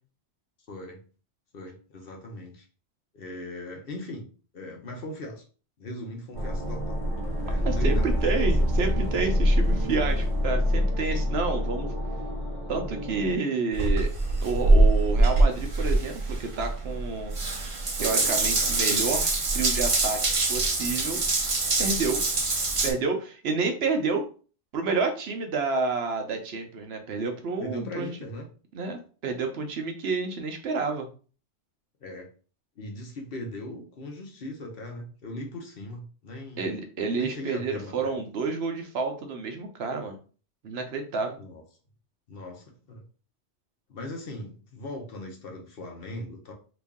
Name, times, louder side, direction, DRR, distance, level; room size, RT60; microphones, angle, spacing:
voice 1, 0.7-1.0 1.5-2.7 3.1-5.4 5.8-7.0 7.4-8.4 27.6-28.5 32.0-32.3 32.8-36.7 37.2-38.2 41.4-41.6 42.3-43.0 43.9-46.5, left 1 dB, 55° left, 2 dB, 0.9 m, -39 dB
sound 1, 6.3-13.4, equal, 40° left, 1.3 m, -26 dB
voice 2, 7.6-11.9 12.7-14.1 14.4-17.3 18.0-20.2 20.5-21.2 21.8-22.2 22.8-24.2 24.7-28.1 28.7-31.1 36.6-40.2 40.6-41.4, right 4 dB, 65° right, 5 dB, 0.9 m, -29 dB
Water tap faucet / Bathtub (filling or washing) / Drip, 13.7-22.9, right 2 dB, 40° right, 0.5 m, -24 dB
3.0 x 2.6 x 3.5 m, 0.38 s
omnidirectional pair, 1.2 m